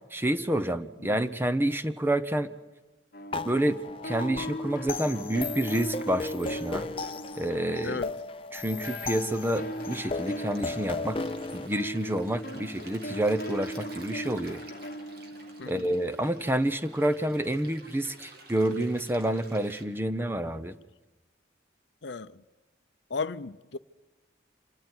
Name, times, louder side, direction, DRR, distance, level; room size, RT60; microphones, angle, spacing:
voice 1, 0.1-2.5 3.4-6.9 7.4-8.0 8.5-11.2 11.5-14.6 15.7-20.7, right 1 dB, 10° right, 0.7 m, -28 dB
sound 1, 3.1-8.4 8.7-16.4, equal, 45° left, 1.1 m, -39 dB
sound 2, 3.3-11.7, left 3 dB, 30° left, 0.8 m, -36 dB
Stream, 8.9-19.8, right 2 dB, 55° right, 2.7 m, -51 dB
voice 2, 15.6-15.9 22.0-22.4 23.1-23.8, left 4 dB, 65° left, 0.7 m, -35 dB
27.5 x 13.5 x 9.7 m
head